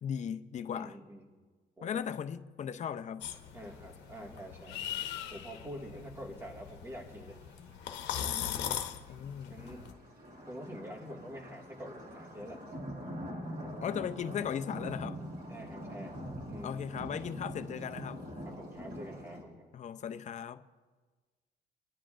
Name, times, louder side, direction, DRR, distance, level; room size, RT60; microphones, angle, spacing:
voice 1, 0.0-1.0 1.8-3.2 9.1-9.6 13.8-15.2 16.6-18.3 19.7-20.6, left 8 dB, 40° left, 0.5 m, -37 dB
voice 2, 0.7-1.3 1.8-2.0 3.5-4.8 5.3-7.4 8.2-8.6 9.5-9.9 10.4-12.6 15.5-16.2 16.5-16.8 18.5-19.7, equal, 15° right, 1.9 m, -46 dB
sound 1, 3.2-9.9, left 10 dB, 90° left, 0.9 m, -40 dB
sound 2, 4.2-4.3 4.5-4.6 5.3-5.8 6.6-6.7 6.9-7.0 7.4-8.4 8.9-19.4, equal, 65° right, 4.2 m, -44 dB
26.5 x 10.0 x 2.5 m
cardioid pair, 105°, 18 cm